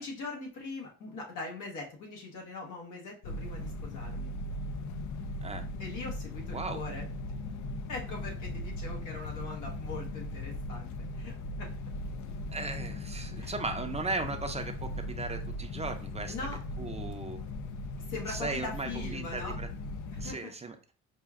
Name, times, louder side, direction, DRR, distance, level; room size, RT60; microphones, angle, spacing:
voice 1, 0.0-4.4 5.8-7.1 7.9-11.3 11.6-11.7 13.4-13.5 16.3-16.6 18.0-19.6 20.1-20.5, left 3 dB, 85° left, -1 dB, 1.3 m, -41 dB
sound 1, 3.2-20.3, left 2 dB, 70° left, 0.5 m, -38 dB
voice 2, 12.5-14.9 15.2-16.3 16.8-17.4 18.3-19.7 20.2-20.8, right 3 dB, 20° right, 6 dB, 0.5 m, -36 dB
5.0 x 2.5 x 2.4 m, 0.37 s
cardioid pair, 90°, 30 cm